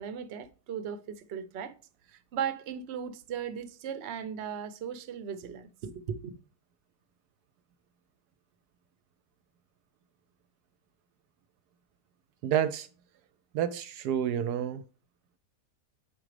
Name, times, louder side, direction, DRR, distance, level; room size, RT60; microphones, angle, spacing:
voice 1, 0.0-1.7 2.1-6.3, right 8 dB, 55° right, 0.8 m, -37 dB
voice 2, 12.4-12.9 13.5-14.8, right 9 dB, 75° right, 1.1 m, -29 dB
8.3 x 4.9 x 3.2 m
omnidirectional pair, 1.8 m